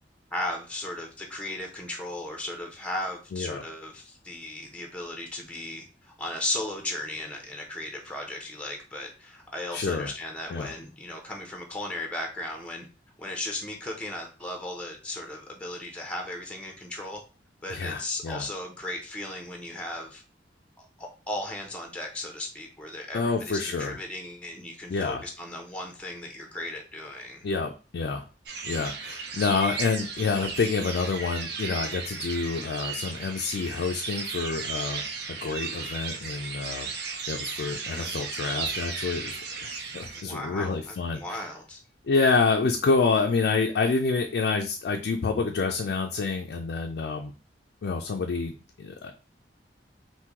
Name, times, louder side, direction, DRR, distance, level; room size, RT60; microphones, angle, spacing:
voice 1, 0.3-12.9 13.2-17.2 17.6-20.2 20.8-27.5 37.9-38.1 40.1-41.8, left 1 dB, 5° left, 2 dB, 0.5 m, -36 dB
voice 2, 3.3-3.6 9.7-10.1 10.5-10.7 17.7-18.5 23.1-24.0 24.9-25.2 27.4-28.2 28.6-35.0 35.3-36.9 37.3-41.4 42.1-47.3 47.8-48.5 48.8-49.1, left 4 dB, 65° left, 2 dB, 0.4 m, -28 dB
sound 1, 28.5-40.2, right 5 dB, 60° right, 0.6 m, -35 dB
3.6 x 2.6 x 2.9 m, 0.33 s
head